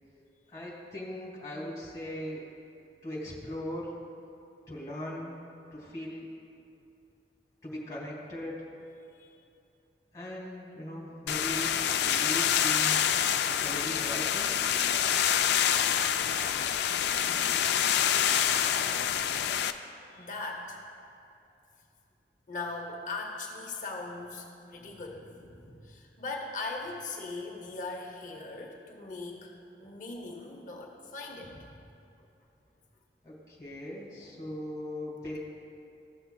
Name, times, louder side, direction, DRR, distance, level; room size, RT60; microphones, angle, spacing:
voice 1, 0.5-2.5 3.0-4.0 4.7-5.3 5.7-6.3 7.6-8.6 10.1-13.2 13.6-14.5 33.2-35.4, left 1 dB, 20° left, -4 dB, 1.6 m, -39 dB
sound 1, 11.3-19.7, left 9 dB, 70° left, 0.3 m, -27 dB
voice 2, 17.6-18.1 20.1-20.8 22.5-31.8, left 3 dB, 45° left, 0 dB, 0.7 m, -40 dB
14.0 x 6.8 x 2.2 m, 2.6 s
head